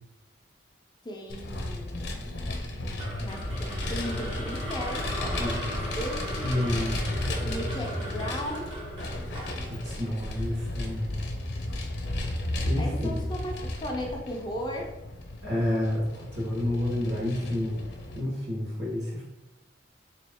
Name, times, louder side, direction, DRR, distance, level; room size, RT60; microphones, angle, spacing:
voice 1, 1.0-2.0 3.2-5.5 5.9-6.5 7.3-8.7 12.8-14.9, equal, 20° left, 0 dB, 0.4 m, -36 dB
Vehicle, 1.3-18.2, left 1 dB, 55° left, 0.7 m, -34 dB
sound 1, 1.9-6.8, equal, 90° right, 0.9 m, -43 dB
sound 2, 3.0-11.2, right 1 dB, 25° right, 0.8 m, -39 dB
voice 2, 6.4-7.0 9.7-11.2 12.6-13.2 15.4-17.8 18.1-19.2, left 1 dB, 60° right, -5 dB, 1.4 m, -29 dB
3.7 x 2.9 x 3.5 m, 0.98 s
head